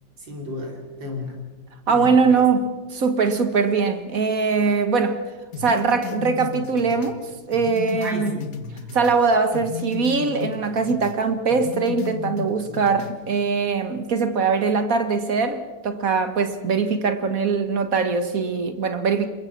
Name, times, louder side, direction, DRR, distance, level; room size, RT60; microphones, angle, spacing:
voice 1, 0.2-1.4 1.9-2.4 8.0-8.4, left 1 dB, 75° right, 4.4 m, -33 dB
voice 2, 1.9-5.2 5.6-8.3 8.9-19.3, right 4 dB, 50° right, 1.8 m, -22 dB
sound 1, 5.5-9.2 9.5-11.2 11.5-13.2, left 6 dB, 50° left, 1.8 m, -34 dB
27.0 x 22.0 x 6.0 m
omnidirectional pair, 2.0 m